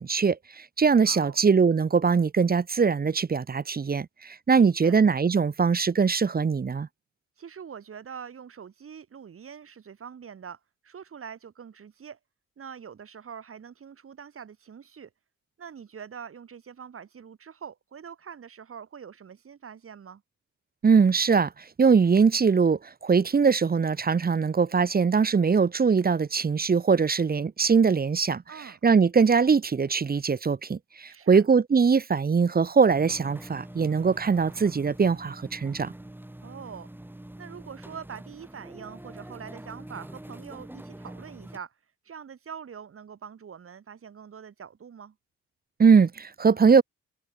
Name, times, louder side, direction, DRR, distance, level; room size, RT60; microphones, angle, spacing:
voice 1, 0.0-6.9 20.8-21.5 21.8-28.4 28.8-35.9 45.8-46.8, right 5 dB, 30° right, 1.3 m, -22 dB
voice 2, 1.1-1.4 4.5-5.0 7.4-12.2 12.6-15.1 15.6-20.2 28.5-28.8 31.1-31.4 36.4-36.9 37.4-41.7 42.1-45.2, right 7 dB, 45° right, 3.9 m, -44 dB
sound 1, 32.9-41.6, right 1 dB, 5° right, 3.2 m, -45 dB
cardioid pair, 90°, 30 cm